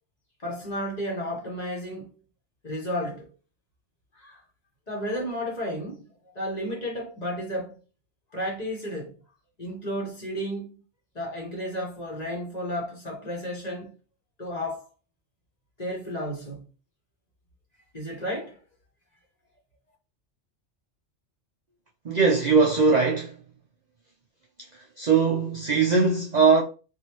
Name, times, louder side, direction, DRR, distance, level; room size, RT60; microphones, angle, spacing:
voice 1, 0.4-2.1 2.6-3.3 4.1-4.4 4.9-6.1 6.3-7.8 8.3-9.1 9.6-10.7 11.1-13.9 14.4-14.9 15.8-16.7 17.9-18.6, equal, 35° left, 1.1 m, -32 dB
voice 2, 22.0-23.4 24.7-26.6, right 4 dB, 55° right, 0.5 m, -21 dB
3.3 x 2.6 x 3.0 m
omnidirectional pair, 1.2 m